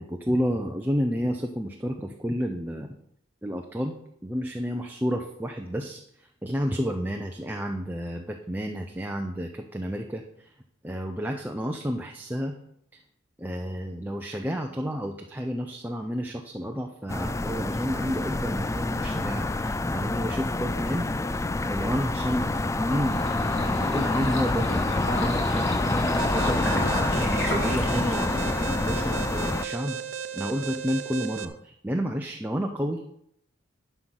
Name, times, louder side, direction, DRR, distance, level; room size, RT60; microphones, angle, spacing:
voice 1, 0.0-3.0 3.4-4.0 4.2-6.0 6.4-10.2 10.8-12.5 13.4-21.1 21.7-23.3 23.6-24.9 25.2-25.8 26.3-30.0 30.3-33.1, equal, 10° right, 2 dB, 0.7 m, -30 dB
sound 1, 17.1-29.6, left 2 dB, 15° left, 0.3 m, -27 dB
sound 2, 22.7-28.7, left 1 dB, 65° left, 2.9 m, -34 dB
Alarm, 26.2-31.5, right 8 dB, 70° right, 0.8 m, -35 dB
11.5 x 5.7 x 6.3 m, 0.73 s
head